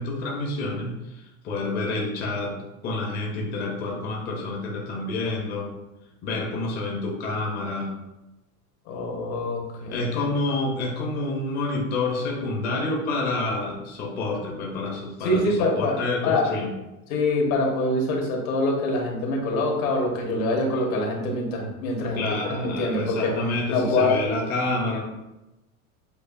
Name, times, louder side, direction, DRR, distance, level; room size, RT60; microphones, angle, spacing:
voice 1, 0.0-2.6 2.8-5.7 6.2-8.0 9.9-16.7 22.1-25.0, left 2 dB, 20° left, -1 dB, 0.6 m, -28 dB
voice 2, 8.9-10.1 15.2-16.5 17.1-22.2 22.4-23.3 23.7-24.2, left 2 dB, 70° left, 0 dB, 1.3 m, -25 dB
6.6 x 2.4 x 2.5 m, 0.98 s
supercardioid pair, 145°, 44 cm